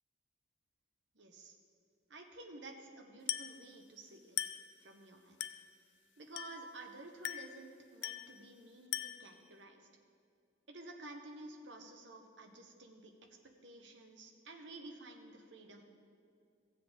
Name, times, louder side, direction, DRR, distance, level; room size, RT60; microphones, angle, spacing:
voice 1, 1.1-1.6 2.1-4.4 4.8-5.4 6.2-9.9 10.7-13.1 13.6-15.9, right 2 dB, 75° right, 4 dB, 1.0 m, -52 dB
Glass, 3.3-3.6 4.4-4.7 5.4-5.7 6.4-6.7 7.2-7.6 8.0-8.4 8.9-9.3, left 11 dB, 70° left, 0.5 m, -40 dB
17.0 x 7.6 x 3.5 m, 2.3 s
head